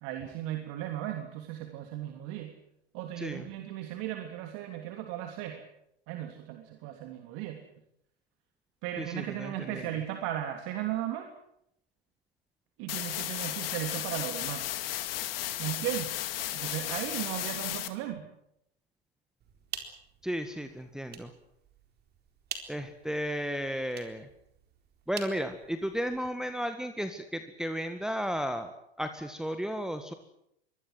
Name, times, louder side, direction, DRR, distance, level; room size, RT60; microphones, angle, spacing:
voice 1, 0.0-2.5 2.9-5.6 6.1-7.7 8.8-11.3 12.8-14.7 15.6-16.2 16.5-18.3, right 12 dB, 50° right, 5 dB, 3.1 m, -36 dB
voice 2, 3.2-3.5 9.0-9.8 20.2-21.3 22.7-24.3 25.1-28.7 29.0-30.1, equal, ahead, 7 dB, 1.8 m, -34 dB
sound 1, 12.9-17.9, left 14 dB, 60° left, 2.5 m, -34 dB
sound 2, 19.4-26.2, right 7 dB, 30° right, 4.1 m, -47 dB
25.0 x 21.5 x 7.9 m, 0.75 s
hypercardioid pair, 95°, 32 cm